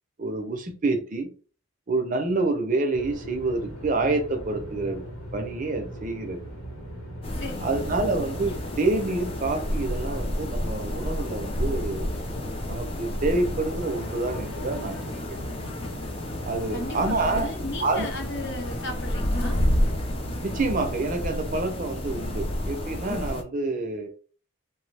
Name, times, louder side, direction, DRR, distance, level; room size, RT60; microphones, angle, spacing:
voice 1, 0.2-1.3 1.9-5.0 5.3-6.4 7.6-12.1 12.7-15.4 16.4-17.5 17.8-18.1 20.4-24.1, right 3 dB, 35° right, 5 dB, 0.5 m, -27 dB
sound 1, 2.9-21.7, equal, 80° left, 1.0 m, -39 dB
sound 2, 7.2-23.4, left 1 dB, 25° left, 0.4 m, -30 dB
voice 2, 7.3-7.8 16.7-19.6, left 2 dB, 55° left, 3 dB, 0.8 m, -36 dB
3.0 x 2.0 x 3.2 m, 0.39 s
head